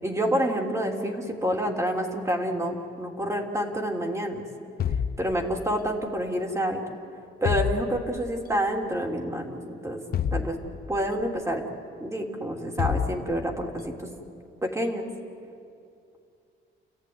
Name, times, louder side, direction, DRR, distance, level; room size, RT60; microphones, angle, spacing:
voice 1, 0.0-4.4 5.2-6.8 7.4-10.0 10.3-10.6 10.9-11.6 12.0-14.1 14.6-15.1, equal, 15° right, 1 dB, 3.4 m, -28 dB
sound 1, 4.8-5.9 7.4-8.4 10.1-11.2 12.8-13.8, left 8 dB, 50° left, 0.8 m, -29 dB
30.0 x 14.5 x 9.8 m, 2.5 s
cardioid pair, 90°, 20 cm